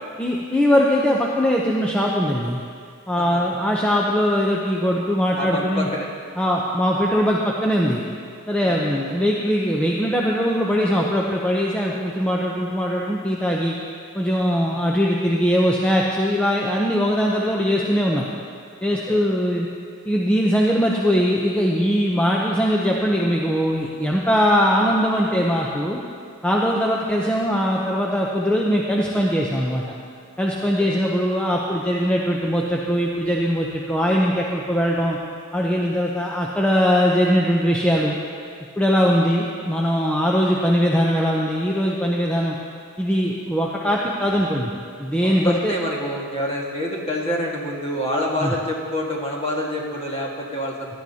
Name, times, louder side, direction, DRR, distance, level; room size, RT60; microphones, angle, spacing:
voice 1, 0.2-2.6 3.1-5.9 6.4-8.0 8.5-13.7 14.1-18.2 18.8-19.7 20.1-26.0 26.4-29.8 30.4-35.2 35.5-38.2 38.8-42.6 43.0-44.7 45.0-45.7 48.4-48.5, equal, 5° left, -3 dB, 0.6 m, -21 dB
voice 2, 5.4-6.1 8.6-9.0 14.7-14.9 19.1-19.2 30.6-31.0 45.2-51.0, equal, 25° left, -2 dB, 1.7 m, -27 dB
17.0 x 12.0 x 2.8 m, 2.2 s
head